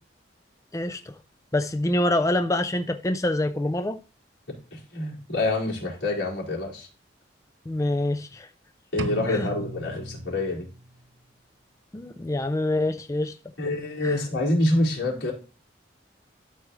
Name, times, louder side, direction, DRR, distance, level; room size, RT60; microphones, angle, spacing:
voice 1, 0.7-1.2 1.5-4.0 7.7-8.5 9.3-9.5 11.9-13.4 14.0-14.2, left 1 dB, 15° left, 0.4 m, -26 dB
voice 2, 4.5-6.9 8.9-10.7 13.6-15.3, left 2 dB, 90° left, 4.6 m, -26 dB
sound 1, 9.0-10.9, right 2 dB, 85° right, 0.7 m, -36 dB
12.5 x 5.8 x 3.2 m
head